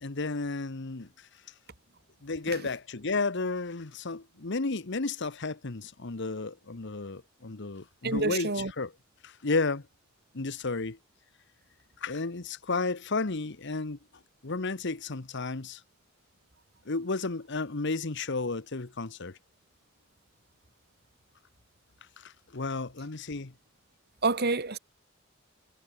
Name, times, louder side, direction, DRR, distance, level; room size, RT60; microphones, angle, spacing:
voice 1, 0.0-1.1 2.2-8.9 9.2-9.8 10.3-11.0 12.0-14.0 14.4-15.8 16.9-19.4 22.2-23.5, left 3 dB, 60° left, 1.2 m, -32 dB
voice 2, 8.0-8.7 24.2-24.8, right 3 dB, 55° right, 2.6 m, -27 dB
head